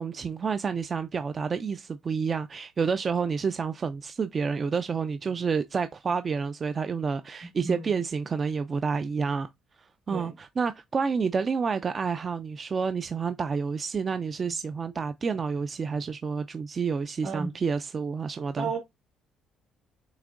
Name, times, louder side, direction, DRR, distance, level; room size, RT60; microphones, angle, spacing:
voice 1, 0.0-9.5 9.8-18.7, right 5 dB, 35° right, 0.3 m, -29 dB
voice 2, 7.4-7.9 10.1-10.4 17.2-17.6 18.6-18.8, right 4 dB, 75° right, 2.0 m, -33 dB
7.0 x 2.8 x 2.5 m
cardioid pair, 95°, 0 cm